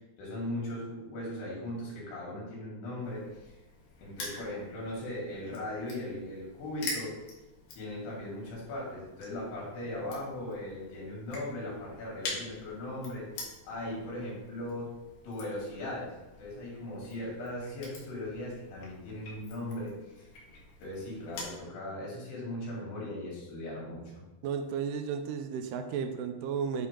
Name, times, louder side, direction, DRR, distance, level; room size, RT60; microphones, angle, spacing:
voice 1, 0.2-3.5 4.0-7.2 7.7-13.3 13.6-14.9 15.2-20.3 20.8-24.2, left 1 dB, 80° left, -5 dB, 4.4 m, -38 dB
Crushing, 3.0-21.6, left 3 dB, 65° left, 2.9 m, -46 dB
voice 2, 24.4-26.9, right 6 dB, 90° right, 7 dB, 2.6 m, -33 dB
9.5 x 3.7 x 3.7 m, 1.0 s
omnidirectional pair, 4.6 m